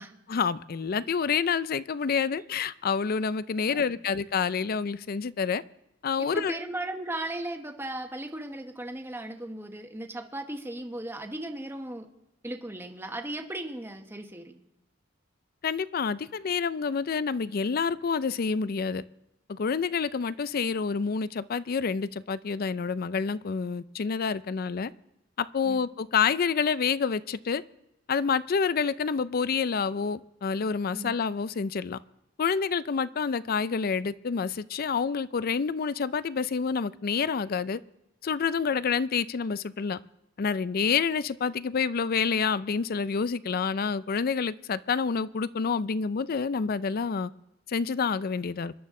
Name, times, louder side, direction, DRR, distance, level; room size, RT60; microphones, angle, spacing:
voice 1, 0.3-5.6 6.0-6.6 15.6-19.0 19.5-24.9 25.4-27.6 28.1-32.0 32.4-37.8 38.2-40.0 40.4-47.3 47.7-48.7, left 5 dB, 50° left, 17 dB, 0.4 m, -28 dB
voice 2, 6.3-12.1 12.4-14.6 25.6-25.8 30.9-31.1, right 1 dB, 15° right, 5 dB, 1.1 m, -36 dB
25.5 x 11.5 x 3.7 m, 0.87 s
head